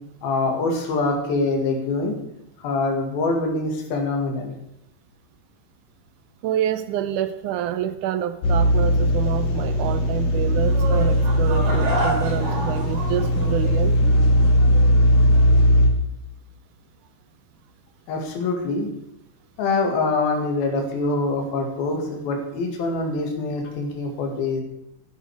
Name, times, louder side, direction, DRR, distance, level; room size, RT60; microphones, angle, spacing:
voice 1, 0.2-2.2 2.6-4.5 18.1-18.9 19.6-24.6, left 3 dB, 85° left, 2 dB, 4.0 m, -24 dB
voice 2, 6.4-14.0, right 10 dB, 75° right, 12 dB, 1.9 m, -27 dB
sound 1, 8.4-15.9, equal, 55° left, 2.4 m, -19 dB
sound 2, 10.6-15.6, right 2 dB, 55° right, 5.0 m, -31 dB
14.0 x 12.0 x 4.8 m, 0.81 s
omnidirectional pair, 4.2 m